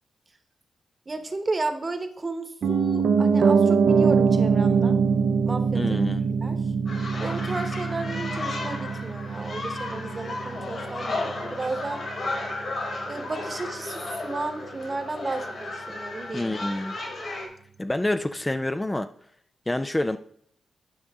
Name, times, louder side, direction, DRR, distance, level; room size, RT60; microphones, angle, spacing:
voice 1, 1.1-5.0 5.4-5.8 6.4-6.7 7.2-12.0 13.1-16.5, right 2 dB, 30° right, 8 dB, 1.1 m, -33 dB
Piano, 2.6-12.6 12.9-13.0, right 5 dB, 70° right, 0.7 m, -24 dB
voice 2, 5.7-6.2 16.3-17.0 17.8-19.1 19.7-20.2, left 1 dB, 15° left, 9 dB, 0.4 m, -27 dB
sound 1, 6.9-17.5, left 2 dB, 60° left, 3.2 m, -34 dB
10.0 x 5.2 x 3.6 m, 0.66 s
cardioid pair, 80°, 0 cm